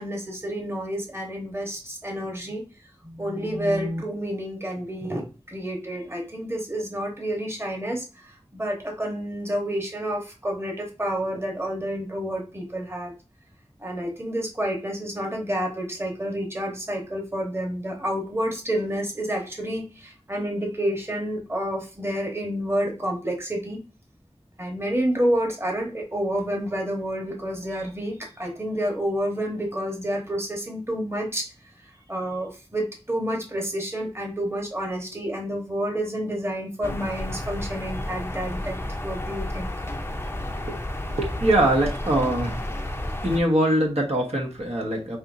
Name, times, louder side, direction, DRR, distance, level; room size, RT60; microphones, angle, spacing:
voice 1, 0.0-2.6 3.0-13.1 13.8-23.8 24.6-31.5 32.1-38.8 39.0-39.7, equal, 20° right, 0 dB, 1.2 m, -29 dB
sound 1, 36.8-43.4, left 1 dB, 20° left, 0.6 m, -31 dB
voice 2, 41.1-42.7 43.2-45.2, right 1 dB, 60° right, -2 dB, 1.2 m, -23 dB
5.6 x 3.0 x 2.6 m, 0.32 s
wide cardioid pair, 50°, 12 cm